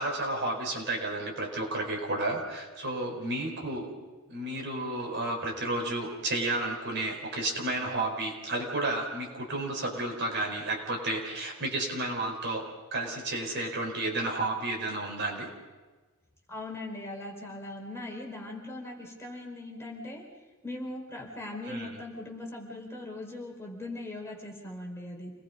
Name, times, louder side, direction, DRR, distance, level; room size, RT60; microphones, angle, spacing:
voice 1, 0.0-3.9 4.3-15.5 21.6-22.0, right 2 dB, 55° right, 1 dB, 4.8 m, -32 dB
voice 2, 16.5-20.2 20.6-25.3, left 2 dB, 10° left, -2 dB, 4.7 m, -40 dB
29.0 x 21.0 x 5.4 m, 1.3 s
head